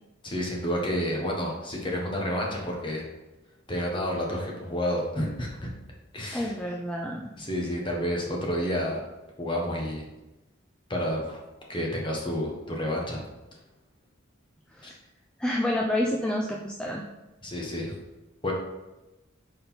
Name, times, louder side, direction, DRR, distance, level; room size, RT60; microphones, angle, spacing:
voice 1, 0.2-3.0 3.7-5.7 6.1-6.5 7.4-9.0 9.4-10.0 10.9-11.4 11.7-13.2 14.8-14.9 17.4-17.9 18.4-18.5, equal, 25° left, -1 dB, 1.1 m, -30 dB
voice 2, 6.3-7.3 14.7-14.9 15.4-17.0, left 1 dB, 5° left, -1 dB, 0.4 m, -29 dB
5.4 x 4.0 x 4.3 m, 1.0 s
head